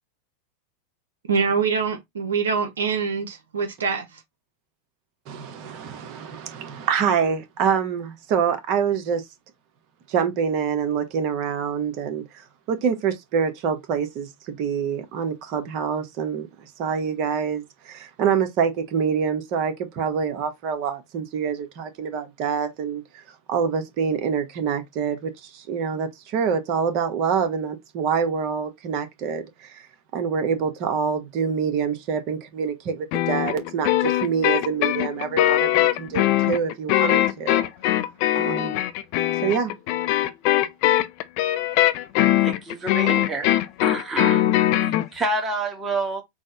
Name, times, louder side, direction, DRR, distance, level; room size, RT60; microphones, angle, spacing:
voice 1, 1.3-4.2, right 5 dB, 80° right, 0.7 m, -24 dB
voice 2, 5.3-9.2 10.1-23.2 23.5-29.8 30.1-37.7 38.3-38.8 39.4-39.8, right 6 dB, 50° right, 1.0 m, -26 dB
sound 1, 33.1-45.1, left 14 dB, 50° left, 0.4 m, -21 dB
voice 3, 42.4-43.5 43.8-44.5 44.8-46.2, right 2 dB, 15° right, 1.2 m, -28 dB
3.9 x 2.2 x 3.7 m
hypercardioid pair, 95°, 0 cm